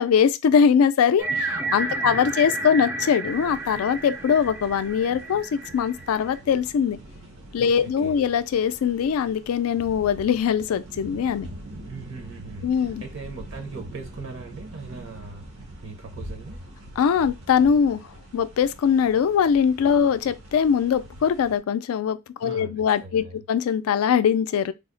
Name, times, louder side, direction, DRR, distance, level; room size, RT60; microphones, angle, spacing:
voice 1, 0.0-7.0 7.5-11.5 12.6-13.0 17.0-18.0 18.3-24.7, left 7 dB, 80° left, 0.3 m, -22 dB
sound 1, 1.2-6.4, right 3 dB, 10° right, 0.4 m, -31 dB
sound 2, 3.2-21.6, right 1 dB, 80° right, 1.1 m, -43 dB
voice 2, 7.6-8.2 11.9-16.6 22.4-23.4, right 4 dB, 60° right, 0.8 m, -40 dB
3.4 x 2.0 x 3.7 m
head